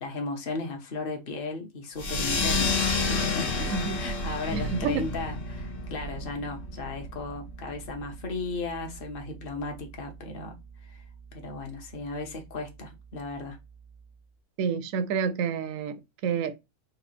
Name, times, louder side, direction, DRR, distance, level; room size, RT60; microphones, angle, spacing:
voice 1, 0.0-3.7 3.9-10.6 10.8-11.0 11.3-13.6, left 3 dB, 45° left, 1.1 m, -36 dB
sound 1, 2.0-7.1, left 3 dB, 65° left, 1.4 m, -29 dB
Bass guitar, 4.5-14.3, left 1 dB, 90° left, 1.2 m, -43 dB
voice 2, 4.5-5.1 14.6-16.6, right 6 dB, 75° right, 1.0 m, -29 dB
4.0 x 2.3 x 4.2 m
omnidirectional pair, 1.4 m